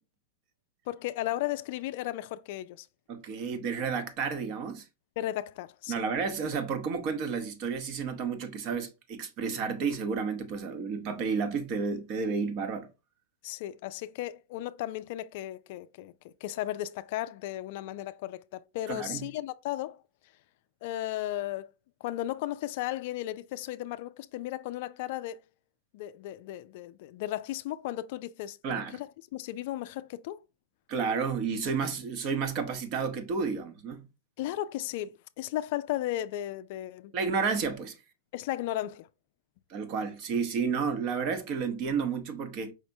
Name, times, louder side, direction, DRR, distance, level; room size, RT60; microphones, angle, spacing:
voice 1, 0.9-2.9 5.2-5.9 13.4-20.0 20.8-21.7 22.0-25.4 25.9-28.6 28.9-29.1 29.3-30.4 34.4-37.1 38.3-39.1, left 14 dB, 55° left, 0.3 m, -35 dB
voice 2, 3.1-4.9 5.9-12.9 18.9-19.3 28.6-29.0 30.9-34.0 37.1-38.0 39.7-42.7, right 5 dB, 40° right, 0.8 m, -31 dB
4.9 x 3.3 x 2.7 m
hypercardioid pair, 130°, 0 cm